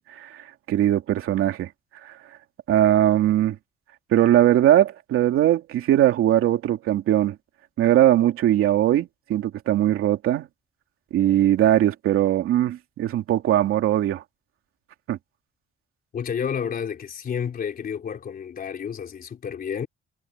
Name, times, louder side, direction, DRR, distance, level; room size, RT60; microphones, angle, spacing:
voice 1, 0.0-1.7 2.0-2.1 2.7-3.6 4.1-7.4 7.8-10.5 11.1-14.2 15.1-15.2, right 12 dB, 90° right, 2.7 m, -20 dB
voice 2, 16.1-19.9, left 7 dB, 45° left, 4.0 m, -30 dB
cardioid pair, 165°, 21 cm